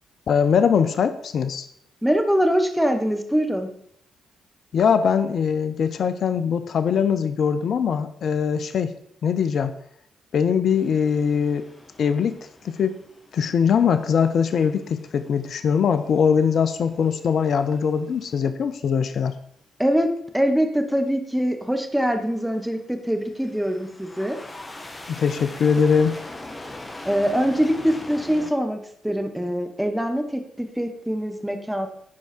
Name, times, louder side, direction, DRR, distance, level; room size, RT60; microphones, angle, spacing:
voice 1, 0.3-1.7 4.7-8.9 9.2-9.7 10.3-11.6 12.0-12.4 12.6-13.0 13.3-19.3 25.1-26.2, left 7 dB, 65° left, 11 dB, 0.6 m, -21 dB
voice 2, 2.0-3.7 19.8-24.4 27.0-31.9, equal, 5° right, 6 dB, 1.4 m, -23 dB
sound 1, 10.7-18.4 22.3-22.8 23.2-28.5, left 2 dB, 25° left, 1.4 m, -42 dB
10.5 x 4.7 x 4.4 m, 0.67 s
hypercardioid pair, 45°, 0 cm